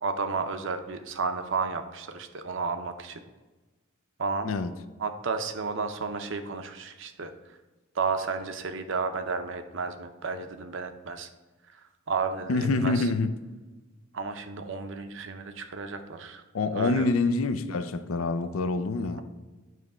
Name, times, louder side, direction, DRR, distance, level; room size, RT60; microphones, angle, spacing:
voice 1, 0.0-3.2 4.2-4.5 5.0-7.3 7.9-11.3 11.7-11.8 12.1-13.1 14.1-16.4 16.7-17.1, right 4 dB, 65° right, 0.6 m, -32 dB
voice 2, 12.5-13.3 16.5-19.2, left 3 dB, 85° left, 0.5 m, -26 dB
9.3 x 3.2 x 4.9 m
head